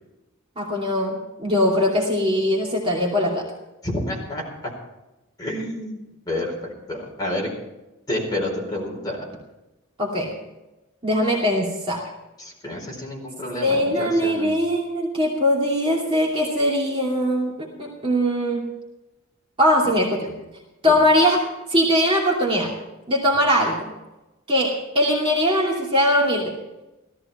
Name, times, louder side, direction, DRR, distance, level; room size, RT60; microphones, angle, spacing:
voice 1, 0.6-3.5 10.0-10.3 11.0-12.0 13.6-18.6 19.6-20.2 20.8-22.7 23.1-23.9 24.5-26.5, equal, 25° right, -3 dB, 2.6 m, -21 dB
voice 2, 3.8-4.7 5.4-6.0 6.3-7.5 8.1-9.3 12.4-14.5 20.9-21.0, left 1 dB, 20° left, -3 dB, 4.5 m, -29 dB
16.5 x 14.0 x 4.4 m, 1.0 s
head